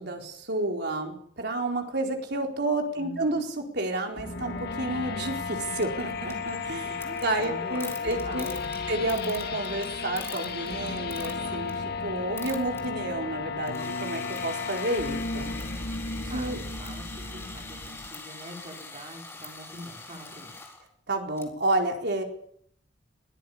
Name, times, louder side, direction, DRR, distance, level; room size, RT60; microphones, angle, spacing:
voice 1, 0.0-6.9 7.2-8.5 8.9-15.5 16.3-16.6 21.1-22.2, right 2 dB, 60° right, 3 dB, 4.3 m, -30 dB
voice 2, 3.0-3.4 6.6-8.7 16.3-17.1 17.3-20.5, equal, 35° right, 1 dB, 5.9 m, -44 dB
sound 1, 4.1-18.1, left 4 dB, 55° left, 2.3 m, -34 dB
sound 2, 5.8-11.9 12.2-12.9 13.6-20.9 21.4-21.5, left 3 dB, 15° left, 4.5 m, -43 dB
22.5 x 17.5 x 8.7 m, 0.67 s
head